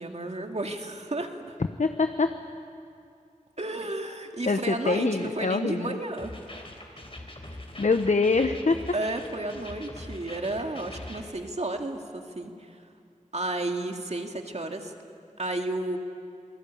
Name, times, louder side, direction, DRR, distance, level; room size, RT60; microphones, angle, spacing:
voice 1, 0.0-1.6 3.6-6.3 6.7-7.0 8.9-12.8 13.3-14.9 15.4-16.0, right 2 dB, 55° right, 4 dB, 2.1 m, -32 dB
voice 2, 1.8-2.3 4.5-6.0 7.8-8.8, left 3 dB, 65° left, 8 dB, 0.9 m, -24 dB
sound 1, 6.2-11.2, left 1 dB, 45° left, 3.6 m, -42 dB
27.5 x 19.0 x 8.6 m, 2.5 s
wide cardioid pair, 60°, 13 cm